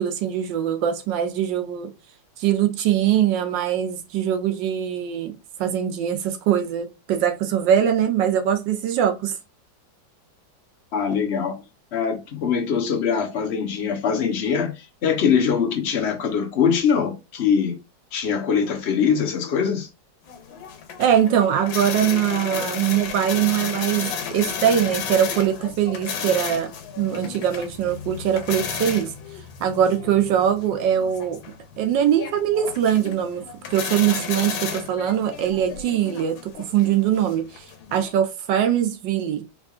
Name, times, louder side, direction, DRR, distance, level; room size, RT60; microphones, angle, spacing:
voice 1, 0.0-1.9 2.4-9.3 21.0-29.1 29.6-31.4 31.8-37.5 37.9-39.5, right 9 dB, 70° right, 1.3 m, -22 dB
voice 2, 10.9-11.6 11.9-17.8 18.1-19.9, left 7 dB, 50° left, 0.8 m, -22 dB
sound 1, 20.3-38.1, left 7 dB, 85° left, 1.5 m, -33 dB
3.6 x 3.4 x 2.4 m
omnidirectional pair, 2.1 m